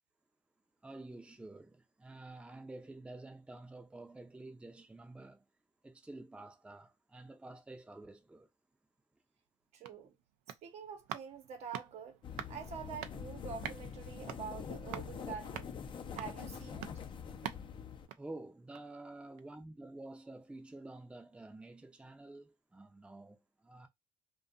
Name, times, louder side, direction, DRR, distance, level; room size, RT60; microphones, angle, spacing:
voice 1, 0.8-5.4 5.8-8.5 18.2-23.9, right 2 dB, 10° right, 0.6 m, -50 dB
sound 1, 9.5-19.0 19.4-19.5, right 11 dB, 85° right, 0.4 m, -48 dB
voice 2, 9.7-10.1 10.6-12.2 12.5-15.8 16.1-16.9, right 7 dB, 65° right, 0.9 m, -46 dB
sound 2, 12.2-18.1, left 7 dB, 45° left, 0.5 m, -45 dB
2.6 x 2.3 x 2.4 m
supercardioid pair, 80°, 12 cm